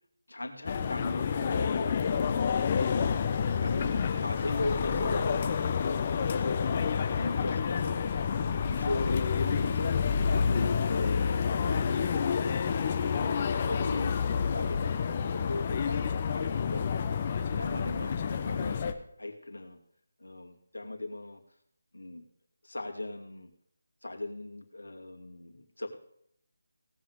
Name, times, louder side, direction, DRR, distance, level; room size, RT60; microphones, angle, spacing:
voice 1, 0.3-2.4 2.7-3.1 3.6-6.8 7.1-8.0 8.3-10.0 10.3-12.5 13.1-14.1 14.5-17.0 17.6-18.8 19.2-19.8 20.2-21.4 21.9-22.2 22.6-23.5 24.0-26.0, left 2 dB, 90° left, 2 dB, 2.6 m, -38 dB
sound 1, 0.6-18.9, left 6 dB, 30° left, 1.0 m, -29 dB
17.5 x 6.1 x 6.5 m, 0.71 s
figure-of-eight pair, 165°, 0 cm